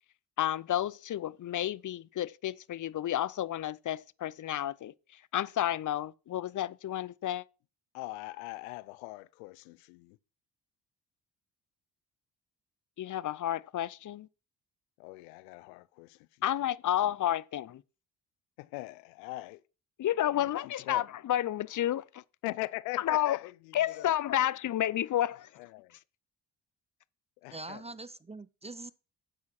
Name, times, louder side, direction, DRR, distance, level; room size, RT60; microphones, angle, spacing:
voice 1, 0.4-4.9 5.3-7.4 13.0-14.3 16.4-17.8 20.0-22.2 23.0-23.4 23.7-25.5, left 12 dB, 40° left, 0.6 m, -31 dB
voice 2, 7.9-10.2 15.0-16.3 17.0-17.1 18.6-19.6 20.3-21.1 22.4-24.5 25.6-26.0 27.4-27.8, left 20 dB, 85° left, 0.5 m, -42 dB
voice 3, 27.5-28.9, right 2 dB, 15° right, 0.5 m, -43 dB
9.9 x 8.1 x 4.2 m
hypercardioid pair, 45°, 48 cm